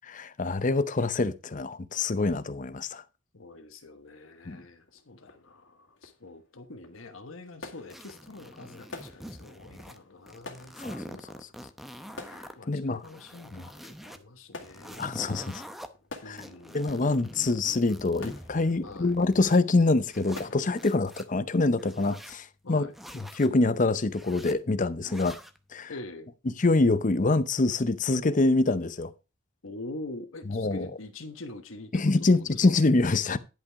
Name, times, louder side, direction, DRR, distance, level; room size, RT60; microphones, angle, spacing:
voice 1, 0.1-3.0 4.5-4.6 10.8-11.3 12.7-13.0 13.5-13.6 15.0-15.6 16.3-16.4 16.7-22.9 23.1-25.4 25.7-25.9 26.6-29.1 30.5-30.9 31.9-33.4, left 3 dB, 40° left, 0.6 m, -25 dB
voice 2, 3.3-10.7 12.6-15.1 16.2-16.9 18.8-19.2 22.6-22.9 25.9-26.3 29.6-32.7, left 2 dB, 85° left, 1.3 m, -44 dB
sound 1, 4.2-20.9, left 3 dB, 65° left, 2.1 m, -50 dB
sound 2, 7.9-10.0 10.3-12.5 13.0-14.2 14.6-15.9 16.4-19.6 20.1-21.3 21.8-22.4 22.9-23.5 24.1-24.6 25.0-25.6, equal, ahead, 0.7 m, -45 dB
10.5 x 5.9 x 4.7 m
head